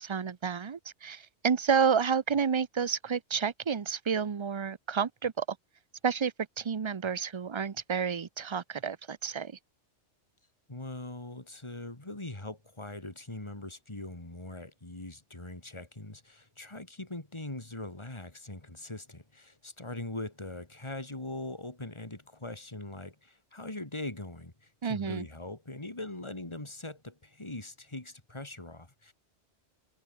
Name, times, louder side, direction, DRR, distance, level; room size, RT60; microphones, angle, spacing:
voice 1, 0.0-5.5 6.0-9.6 24.8-25.3, right 6 dB, 35° right, 0.5 m, -30 dB
voice 2, 10.7-29.1, left 2 dB, 25° left, 3.0 m, -41 dB
omnidirectional pair, 1.2 m